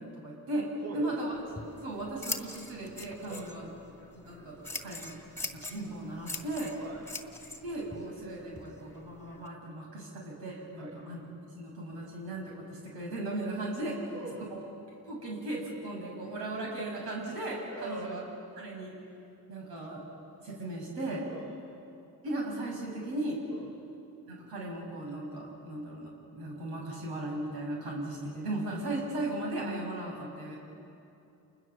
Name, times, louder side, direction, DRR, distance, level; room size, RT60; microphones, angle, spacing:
voice 1, 0.0-0.7 0.9-1.3 1.8-3.7 4.1-5.2 5.5-6.8 7.6-14.0 15.1-18.2 18.6-18.9 19.5-20.0 20.4-21.2 22.2-23.4 24.3-30.6, right 1 dB, 80° right, -2 dB, 6.9 m, -37 dB
voice 2, 0.8-1.2 3.2-3.5 6.8-7.0 10.8-11.0 13.8-14.5 17.7-18.1 21.3-21.5 23.5-23.7, right 3 dB, 45° right, 0 dB, 5.8 m, -43 dB
Scissors, 1.3-9.5, left 2 dB, 5° left, 2.1 m, -43 dB
29.0 x 20.5 x 7.4 m, 2.7 s
cardioid pair, 85°, 37 cm